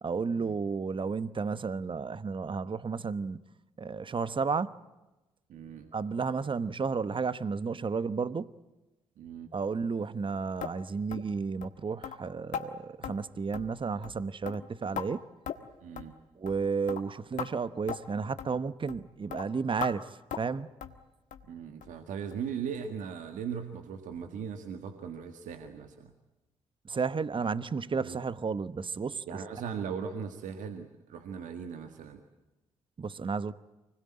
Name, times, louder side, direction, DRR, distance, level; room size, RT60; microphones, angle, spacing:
voice 1, 0.0-3.4 3.8-4.8 5.9-8.5 9.5-15.2 16.4-20.1 20.4-20.7 26.8-29.2 33.0-33.5, right 5 dB, 40° right, 1.1 m, -32 dB
voice 2, 5.5-5.9 9.2-9.5 15.8-16.1 21.5-26.1 27.9-28.2 29.3-32.2, right 7 dB, 70° right, 1.7 m, -39 dB
sound 1, 10.6-10.8 11.1-11.3 11.6-11.7 12.0-12.2 12.5-12.7 13.0-13.2 13.5-13.8 14.0-14.2 14.5-15.1 15.5-15.7 16.0-16.1 16.5-16.6 16.9-17.0 17.4-17.5 17.9-18.0 18.4-18.5 18.9-19.0 19.3-19.4 19.8-19.9 20.3-20.5 20.8-21.0 21.3-21.5 21.8-21.9 22.3-22.4 22.8-22.9, left 9 dB, 70° left, 1.6 m, -38 dB
25.0 x 20.0 x 8.8 m
hypercardioid pair, 40°, 14 cm